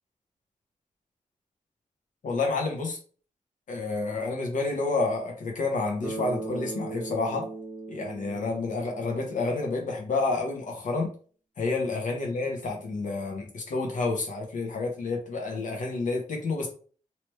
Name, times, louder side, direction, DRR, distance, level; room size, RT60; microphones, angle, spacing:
voice 1, 2.2-3.0 3.7-7.4 7.9-11.1 11.6-16.7, left 3 dB, 75° left, 1 dB, 1.1 m, -29 dB
Bass guitar, 6.0-10.0, right 2 dB, ahead, 1.1 m, -39 dB
3.1 x 3.0 x 3.1 m, 0.41 s
wide cardioid pair, 125°, 13 cm